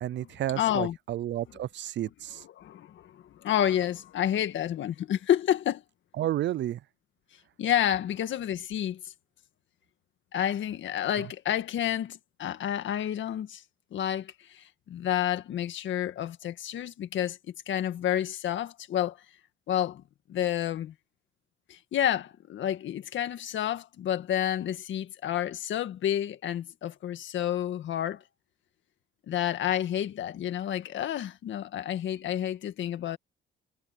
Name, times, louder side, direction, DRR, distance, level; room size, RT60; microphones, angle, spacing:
voice 1, 0.0-2.4 6.2-6.8 11.2-11.3, right 13 dB, 65° right, 0.5 m, -31 dB
voice 2, 0.6-1.0 2.6-5.8 7.6-9.0 10.3-13.6 13.9-19.2 19.7-20.0 20.3-20.9 21.7-28.2 29.3-33.2, left 10 dB, 70° left, 1.8 m, -29 dB
cardioid pair, 90°, 20 cm